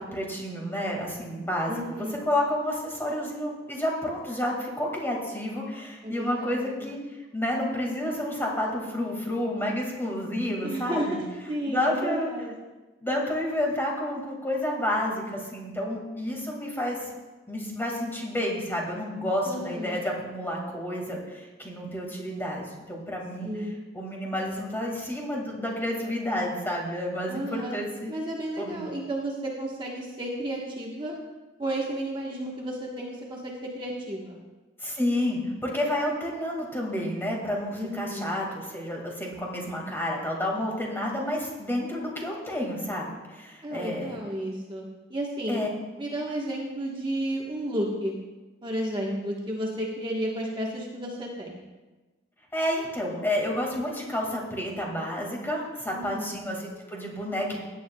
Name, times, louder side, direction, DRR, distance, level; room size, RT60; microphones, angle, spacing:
voice 1, 0.0-7.0 7.3-11.2 11.7-12.3 13.0-17.0 17.5-23.5 23.9-28.1 28.6-28.8 34.8-44.2 45.5-45.7 52.5-57.6, left 1 dB, 10° left, -1 dB, 2.0 m, -30 dB
voice 2, 1.7-2.2 6.0-6.9 10.6-12.5 19.5-20.0 23.4-23.8 27.3-27.8 28.1-31.1 31.6-34.4 37.8-38.3 43.6-44.8 45.1-45.6 46.0-48.1 48.6-51.6 55.9-56.4, right 1 dB, 25° right, -3 dB, 1.3 m, -32 dB
16.5 x 9.3 x 2.3 m, 1.2 s
head